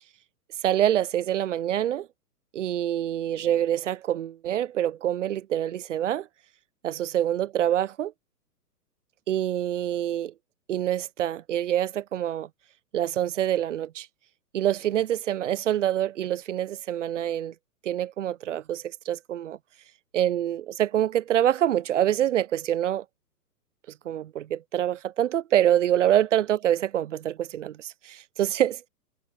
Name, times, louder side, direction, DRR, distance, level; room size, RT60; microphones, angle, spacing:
voice 1, 0.6-2.1 2.5-6.3 6.8-8.1 9.3-10.3 10.7-12.5 12.9-14.1 14.5-17.5 17.8-19.6 20.1-23.0 24.0-28.9, right 11 dB, 50° right, 0.9 m, -26 dB
figure-of-eight pair, 120°, 48 cm